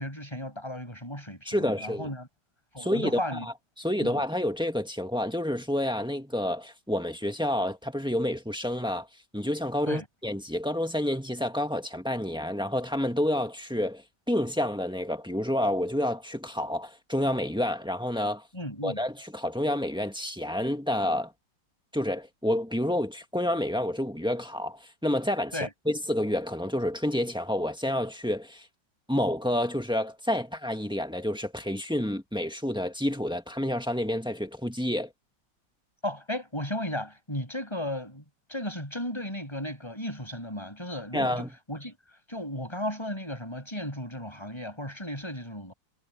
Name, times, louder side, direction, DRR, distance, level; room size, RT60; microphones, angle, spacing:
voice 1, 0.0-2.3 2.7-3.5 4.0-4.1 9.9-10.0 18.5-19.0 25.5-25.7 36.0-38.2 38.5-41.9 42.3-45.7, left 1 dB, 15° left, 7.9 m, -35 dB
voice 2, 1.5-2.1 2.8-3.4 3.8-9.1 9.3-14.0 14.3-18.4 18.8-21.3 21.9-25.5 25.9-28.7 29.1-35.1 41.1-41.5, left 1 dB, 5° right, 1.7 m, -29 dB
omnidirectional pair, 2.1 m